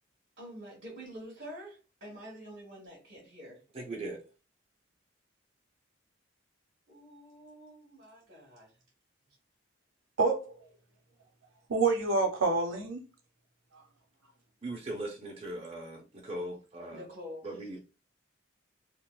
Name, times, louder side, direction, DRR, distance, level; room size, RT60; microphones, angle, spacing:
voice 1, 0.4-3.6 6.9-8.7 16.9-17.4, equal, 50° right, 1.2 m, -47 dB
voice 2, 3.7-4.2 14.6-17.0 17.4-17.8, right 1 dB, 30° right, 0.6 m, -39 dB
voice 3, 10.2-10.5 11.7-13.0, right 3 dB, 80° right, 0.6 m, -27 dB
3.7 x 2.2 x 2.3 m
head